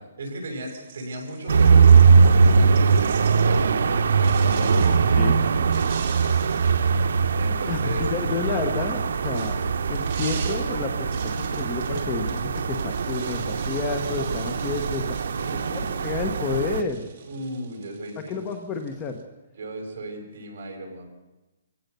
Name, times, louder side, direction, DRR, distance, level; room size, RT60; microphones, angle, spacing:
voice 1, 0.2-6.3 7.3-8.1 15.3-16.1 17.3-18.4 19.6-21.0, right 1 dB, 50° right, 2 dB, 7.5 m, -36 dB
sound 1, 0.7-3.7 4.2-5.0 5.6-7.8 8.8-19.2, right 7 dB, 30° right, 2.8 m, -43 dB
sound 2, 1.5-16.8, right 5 dB, 70° right, 1.0 m, -21 dB
voice 2, 7.7-15.2 15.5-17.1 18.3-19.2, left 5 dB, 15° left, 6 dB, 1.3 m, -30 dB
25.0 x 17.5 x 6.9 m, 1.0 s
hypercardioid pair, 175°, 0 cm